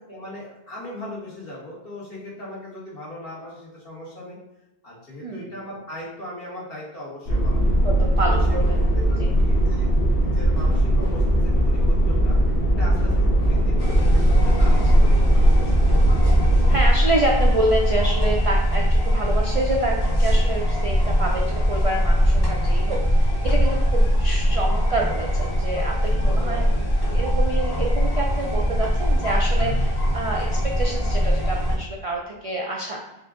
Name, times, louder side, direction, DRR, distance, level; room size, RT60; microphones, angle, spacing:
voice 1, 0.1-4.4 4.8-7.9 8.3-8.6 8.9-9.9 10.2-12.4 12.7-15.6 26.0-26.9, left 1 dB, 60° left, -6 dB, 1.6 m, -38 dB
sound 1, 7.3-16.8, right 1 dB, 85° left, 1.0 m, -20 dB
voice 2, 7.8-8.8 9.2-9.3 16.7-26.7 27.1-33.0, right 1 dB, 55° right, -1 dB, 0.4 m, -27 dB
sound 2, 13.8-31.8, equal, 25° left, 0.8 m, -21 dB
4.5 x 2.5 x 3.5 m, 0.95 s
omnidirectional pair, 1.1 m